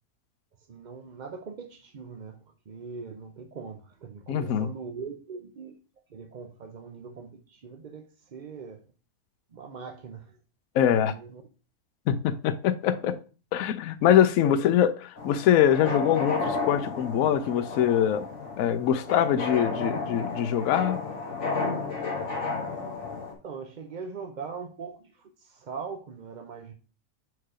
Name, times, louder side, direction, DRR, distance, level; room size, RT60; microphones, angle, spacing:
voice 1, 0.7-2.4 2.7-5.7 6.1-8.9 9.5-10.4 10.8-11.4 13.0-13.1 14.4-14.7 23.4-26.7, right 5 dB, 50° right, 0.5 m, -41 dB
voice 2, 4.3-4.7 10.7-11.1 12.1-13.2 13.5-18.2 18.6-21.0, left 10 dB, 70° left, 1.0 m, -23 dB
sound 1, 15.2-23.3, left 3 dB, 50° left, 1.7 m, -32 dB
4.7 x 4.6 x 4.9 m
omnidirectional pair, 1.6 m